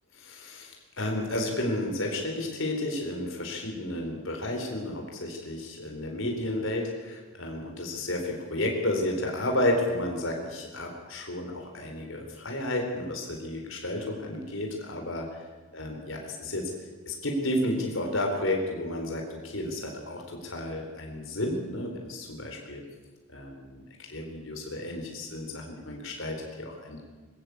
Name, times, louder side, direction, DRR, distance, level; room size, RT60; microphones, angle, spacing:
voice 1, 0.1-15.4 15.7-16.7 17.1-22.8 23.3-27.0, left 1 dB, 70° left, 2 dB, 4.1 m, -32 dB
21.0 x 15.0 x 8.5 m, 1.3 s
head